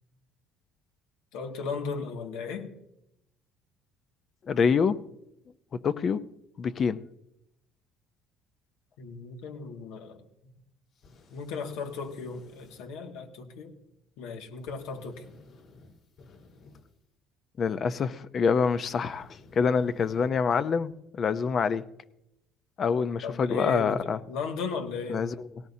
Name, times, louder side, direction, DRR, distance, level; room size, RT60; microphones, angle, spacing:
voice 1, 1.3-2.7 9.0-10.2 11.3-13.7 14.2-15.2 23.2-24.0 24.3-25.3, left 4 dB, 85° left, 3 dB, 2.2 m, -36 dB
voice 2, 4.5-5.0 5.8-6.2 6.6-7.0 17.6-21.8 22.8-24.2 25.1-25.6, left 6 dB, 40° left, 13 dB, 0.7 m, -26 dB
sound 1, 10.9-12.9 14.6-17.0 18.7-20.3, left 3 dB, 60° left, 4.6 m, -55 dB
18.5 x 18.0 x 2.8 m, 0.82 s
cardioid pair, 120°, 0 cm